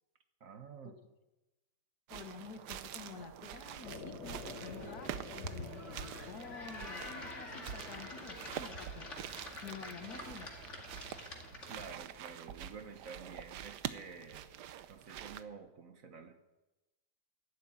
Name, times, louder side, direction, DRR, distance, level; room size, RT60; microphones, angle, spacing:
voice 1, 0.4-1.0 11.7-14.5 14.9-16.4, right 5 dB, 55° right, 8 dB, 1.4 m, -50 dB
voice 2, 2.1-10.6, left 6 dB, 60° left, 8 dB, 1.6 m, -50 dB
sound 1, 2.1-15.4, right 10 dB, 70° right, 1.3 m, -46 dB
sound 2, 3.8-8.9, left 3 dB, 85° left, 2.5 m, -50 dB
sound 3, 4.3-12.0, left 2 dB, 40° left, 2.4 m, -48 dB
12.5 x 11.5 x 8.6 m, 1.0 s
omnidirectional pair, 1.9 m